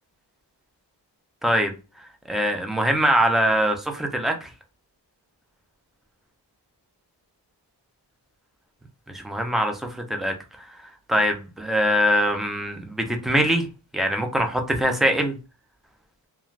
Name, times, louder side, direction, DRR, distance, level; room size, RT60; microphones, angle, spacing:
voice 1, 2.3-4.5 9.1-13.7 13.9-15.4, equal, ahead, 0.5 m, -23 dB
2.5 x 2.3 x 3.1 m
wide cardioid pair, 120°, 42 cm